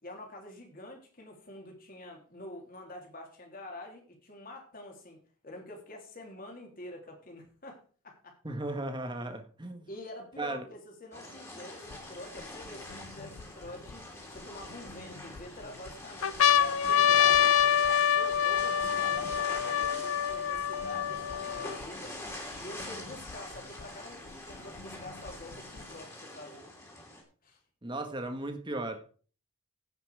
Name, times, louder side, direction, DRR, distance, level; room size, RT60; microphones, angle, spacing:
voice 1, 0.0-8.4 9.9-14.0 14.3-17.5 18.1-22.2 22.6-26.7 27.4-27.6, left 1 dB, 40° left, 1 dB, 3.3 m, -47 dB
voice 2, 8.4-9.9 10.4-10.6 27.8-29.1, right 2 dB, 20° right, 6 dB, 1.5 m, -36 dB
sound 1, 11.1-27.2, left 1 dB, 15° left, 3.0 m, -44 dB
sound 2, 11.9-12.0 12.7-13.9 14.6-15.4 15.9-16.0 16.2-21.8 22.6-22.7 22.8-23.8 24.8-25.8, left 9 dB, 70° left, 0.5 m, -26 dB
16.0 x 5.9 x 4.8 m, 0.39 s
head